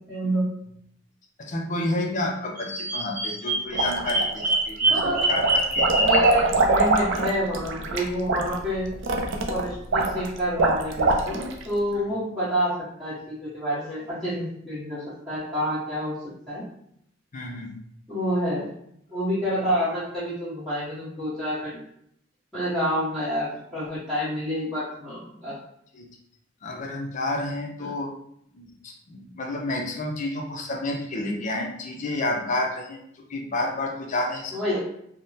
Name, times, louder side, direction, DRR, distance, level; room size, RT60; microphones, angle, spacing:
voice 1, 0.1-0.4 4.9-5.2 6.0-8.9 9.5-12.7 13.0-16.2 16.5-16.6 18.1-18.7 19.1-21.8 22.5-25.5 27.8-27.9 34.5-34.8, equal, 5° left, -15 dB, 1.2 m, -28 dB
voice 2, 1.4-5.9 17.3-17.7 25.9-26.1 26.6-28.1 28.5-34.6, left 2 dB, 40° left, 1 dB, 0.5 m, -30 dB
Bird vocalization bird call bird song, 2.6-6.4, right 1 dB, 45° right, 0.8 m, -24 dB
sound 1, 3.7-4.5 4.9-11.6, right 3 dB, 75° right, 0.4 m, -24 dB
3.4 x 2.1 x 2.7 m, 0.71 s
head